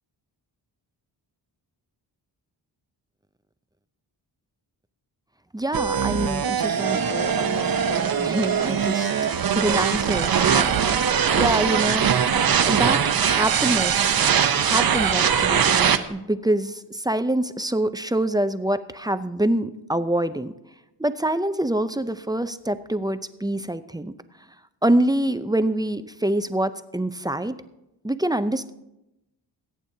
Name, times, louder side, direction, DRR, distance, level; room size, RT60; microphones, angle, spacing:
voice 1, 5.5-9.1 9.5-12.1 12.6-14.2 14.6-20.5 21.0-24.1 24.8-27.6 28.0-28.7, right 1 dB, 10° right, 11 dB, 0.4 m, -26 dB
sound 1, 5.7-16.0, right 7 dB, 55° right, 0.8 m, -21 dB
22.0 x 8.7 x 2.7 m, 0.90 s
wide cardioid pair, 95°, 43 cm